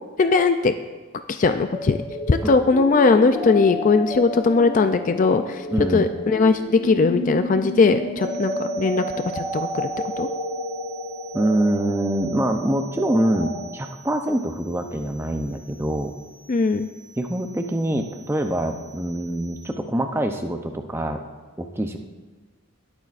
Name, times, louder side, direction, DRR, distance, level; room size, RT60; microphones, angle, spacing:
voice 1, 0.2-0.7 1.3-2.0 2.3-9.0 9.3-9.9 10.2-10.3 16.5-16.9, left 4 dB, 35° left, 9 dB, 0.3 m, -19 dB
sound 1, 1.7-13.6, equal, 20° left, 1.6 m, -31 dB
voice 2, 5.7-6.1 11.3-16.1 17.2-21.2 21.6-22.0, right 1 dB, 10° right, 5 dB, 0.6 m, -25 dB
sound 2, 8.2-19.6, right 9 dB, 60° right, 3.2 m, -48 dB
18.5 x 8.8 x 2.5 m, 1.3 s
head